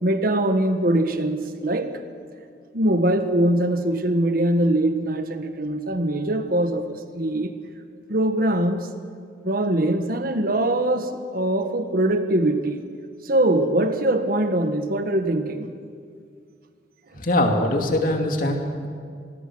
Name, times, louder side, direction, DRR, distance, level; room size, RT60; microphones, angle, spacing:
voice 1, 0.0-2.0 2.7-7.5 8.1-8.9 9.4-12.9 13.2-15.7, right 1 dB, 55° right, 8 dB, 1.4 m, -22 dB
voice 2, 17.2-18.9, left 1 dB, 50° left, 3 dB, 2.6 m, -22 dB
26.0 x 20.0 x 6.2 m, 2.2 s
head